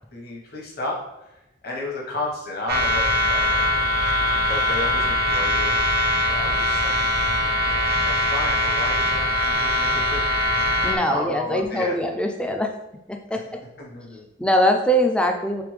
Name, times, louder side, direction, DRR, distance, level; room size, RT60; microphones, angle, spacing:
voice 1, 0.1-1.0 1.6-3.7 4.5-10.2 11.0-12.0 13.3-13.4 13.8-14.3, left 2 dB, 55° left, -2 dB, 1.1 m, -33 dB
sound 1, 2.7-11.0, left 1 dB, 55° right, 0.5 m, -22 dB
voice 2, 10.8-12.7 13.3-13.6 14.4-15.6, equal, 5° left, 4 dB, 0.3 m, -22 dB
3.8 x 3.4 x 3.2 m, 0.94 s
head